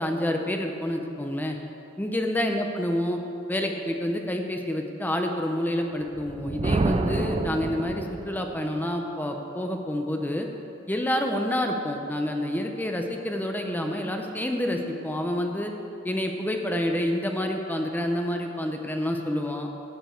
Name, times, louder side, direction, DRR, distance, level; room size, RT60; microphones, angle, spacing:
voice 1, 0.0-1.6 2.0-3.2 3.5-10.5 10.9-15.7 16.0-19.7, left 1 dB, 10° left, 3 dB, 0.6 m, -28 dB
Thunder, 6.1-8.6, right 3 dB, 25° right, 0.4 m, -28 dB
10.5 x 5.2 x 7.8 m, 2.8 s
head